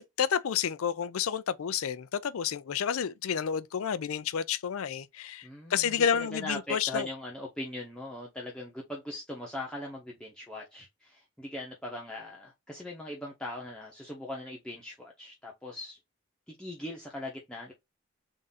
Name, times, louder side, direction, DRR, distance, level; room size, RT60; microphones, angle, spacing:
voice 1, 0.2-7.1, left 8 dB, 80° left, 0.4 m, -30 dB
voice 2, 5.4-16.0 16.5-17.7, left 1 dB, 5° left, 0.8 m, -40 dB
3.7 x 2.6 x 4.0 m
head